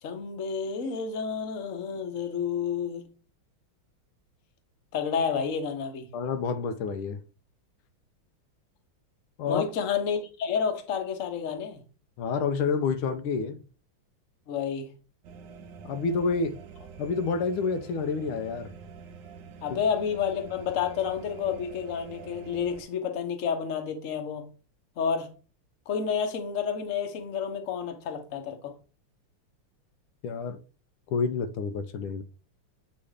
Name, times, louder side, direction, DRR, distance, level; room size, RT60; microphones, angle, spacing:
voice 1, 0.0-3.0 4.9-6.1 9.5-11.8 14.5-14.9 19.6-24.5 25.0-25.3 25.9-28.7, left 7 dB, 45° left, 1.2 m, -30 dB
voice 2, 6.1-7.2 9.4-9.6 12.2-13.6 15.8-16.6 17.0-18.7 30.2-30.6 31.1-32.2, left 5 dB, 80° left, 1.5 m, -28 dB
sound 1, 15.2-22.8, right 6 dB, 65° right, 1.2 m, -46 dB
8.5 x 3.2 x 4.9 m
omnidirectional pair, 2.4 m